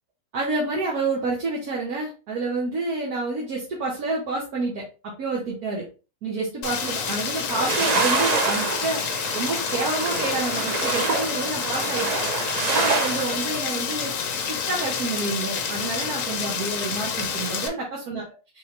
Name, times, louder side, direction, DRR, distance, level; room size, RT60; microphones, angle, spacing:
voice 1, 0.3-5.8 6.2-18.3, right 3 dB, 80° right, -3 dB, 1.6 m, -29 dB
Rain, 6.6-17.7, left 6 dB, 65° left, 1.1 m, -29 dB
sound 1, 7.5-13.6, right 3 dB, 40° right, 0.6 m, -26 dB
4.1 x 3.7 x 3.1 m, 0.32 s
omnidirectional pair, 1.6 m